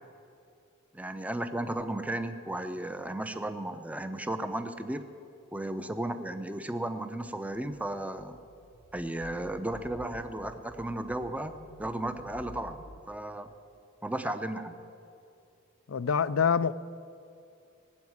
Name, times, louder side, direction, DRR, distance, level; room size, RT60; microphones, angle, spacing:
voice 1, 0.9-5.0 5.5-8.4 8.9-11.5 11.8-12.8 13.1-13.5 14.0-14.8, right 1 dB, 5° right, 9 dB, 0.6 m, -34 dB
sound 1, 8.1-13.0, equal, 60° left, 1.0 m, -51 dB
voice 2, 15.9-16.7, left 6 dB, 80° left, 16 dB, 0.5 m, -25 dB
18.0 x 8.3 x 9.5 m, 2.6 s
head